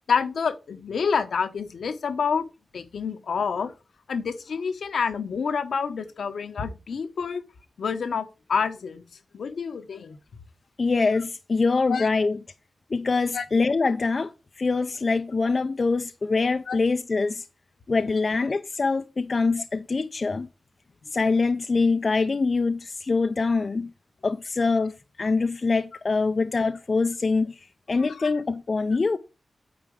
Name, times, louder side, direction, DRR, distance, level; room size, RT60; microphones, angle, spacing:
voice 1, 0.1-2.4 2.7-3.7 4.1-7.4 7.8-9.0 9.3-10.2 11.9-12.1 13.3-13.4 16.7-16.8 28.0-28.3, left 6 dB, 80° left, 1.0 m, -28 dB
voice 2, 10.8-12.4 12.9-17.5 17.9-20.5 21.1-23.9 24.2-24.9 25.2-29.2, left 4 dB, 50° left, 0.6 m, -24 dB
8.9 x 4.4 x 4.9 m
cardioid pair, 45°, 0 cm